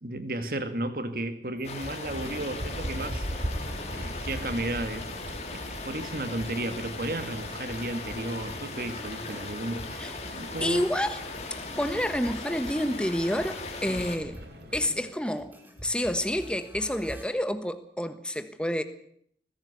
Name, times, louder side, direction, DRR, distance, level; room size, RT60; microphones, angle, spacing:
voice 1, 0.0-3.3 3.9-5.1 5.5-10.8 11.7-11.8 13.9-14.0, right 1 dB, 55° right, 10 dB, 2.2 m, -34 dB
sound 1, 1.6-14.2, left 3 dB, 35° left, 2.7 m, -39 dB
sound 2, 1.6-17.2, equal, 10° right, 3.5 m, -47 dB
sound 3, 2.0-15.1, equal, 75° right, 3.4 m, -41 dB
voice 2, 10.6-11.2 11.5-14.4 14.7-15.5 15.8-18.8, equal, 5° left, 10 dB, 1.4 m, -29 dB
21.0 x 15.5 x 8.3 m, 0.66 s
head